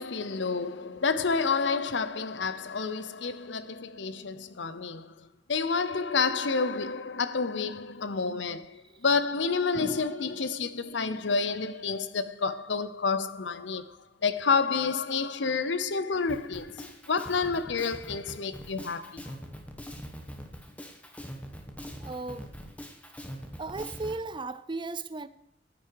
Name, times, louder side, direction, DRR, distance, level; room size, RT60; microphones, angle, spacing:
voice 1, 0.0-14.0 14.2-19.3, left 4 dB, 75° left, 0.8 m, -29 dB
voice 2, 9.7-10.4 22.0-22.5 23.6-25.3, right 3 dB, 25° right, 0.6 m, -36 dB
Drum kit, 16.3-24.2, equal, 10° left, 1.5 m, -43 dB
14.5 x 9.4 x 4.8 m
head